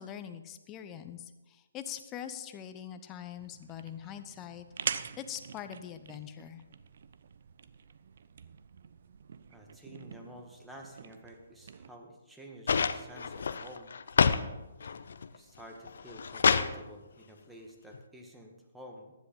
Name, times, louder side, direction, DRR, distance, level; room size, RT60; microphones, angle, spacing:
voice 1, 0.0-6.6, left 9 dB, 20° left, 9 dB, 0.8 m, -43 dB
sound 1, 3.4-11.9, right 7 dB, 55° right, 0.6 m, -44 dB
voice 2, 9.5-13.9 14.8-15.0 15.3-19.1, equal, 5° right, 1 dB, 1.6 m, -50 dB
sound 2, 12.7-14.5 14.8-15.4 15.9-16.7 17.9-18.0, left 6 dB, 65° left, 0.6 m, -27 dB
15.0 x 10.5 x 3.9 m, 1.1 s
figure-of-eight pair, 140°, 0 cm